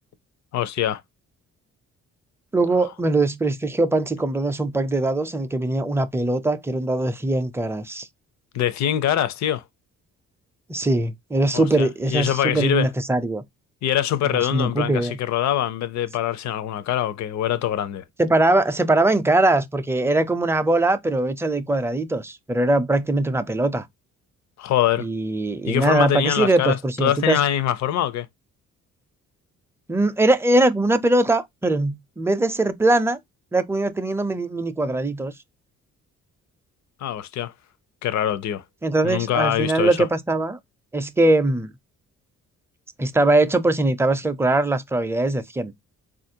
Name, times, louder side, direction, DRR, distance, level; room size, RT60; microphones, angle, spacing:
voice 1, 0.5-1.0 8.5-9.6 11.5-12.9 13.8-18.0 24.6-25.1 25.7-28.3 37.0-37.5 38.0-38.6 39.0-40.0, left 11 dB, 65° left, 0.6 m, -23 dB
voice 2, 2.5-8.1 10.7-13.4 14.3-15.2 18.2-23.9 25.0-27.4 29.9-33.2 33.5-35.3 38.8-40.6 40.9-41.7 43.0-45.7, right 2 dB, 10° right, 0.4 m, -21 dB
4.0 x 2.5 x 2.7 m
cardioid pair, 90°, 30 cm